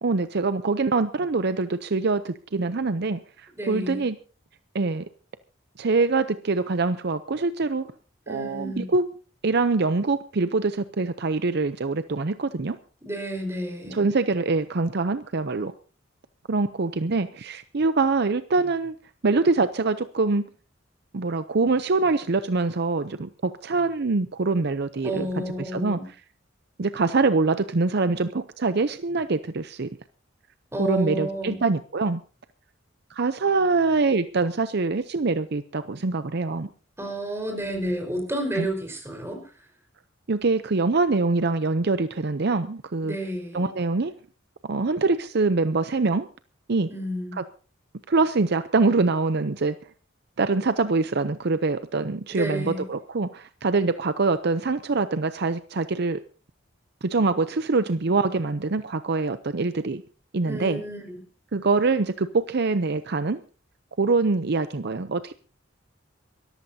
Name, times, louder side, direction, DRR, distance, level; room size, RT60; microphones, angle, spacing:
voice 1, 0.0-4.2 4.7-5.0 5.8-7.9 8.3-9.1 9.4-12.8 13.9-15.7 16.5-18.9 19.2-20.5 21.1-25.3 25.7-26.0 26.8-29.9 30.8-32.2 33.1-36.7 38.6-38.7 40.3-43.2 43.5-44.1 44.6-46.3 46.7-46.9 48.1-49.8 50.4-56.2 57.0-60.0 60.3-60.8 61.5-63.4 64.0-65.3, right 3 dB, 55° right, 12 dB, 0.7 m, -24 dB
voice 2, 3.5-4.1 8.3-8.9 13.0-14.0 25.0-26.1 30.7-31.6 37.0-39.4 43.0-43.7 46.9-47.4 52.3-52.8 60.4-61.2, right 1 dB, 15° right, 4 dB, 4.7 m, -31 dB
24.0 x 14.0 x 2.8 m, 0.37 s
head